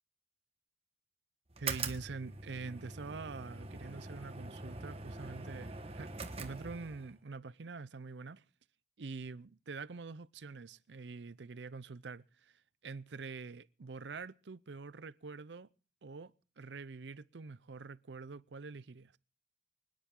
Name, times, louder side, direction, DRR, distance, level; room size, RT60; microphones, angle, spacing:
sound 1, 1.5-7.2, right 4 dB, 35° right, 1.2 m, -43 dB
voice 1, 1.6-8.4 9.0-15.7 16.0-19.2, right 4 dB, 85° right, 0.6 m, -46 dB
25.0 x 10.0 x 3.8 m
head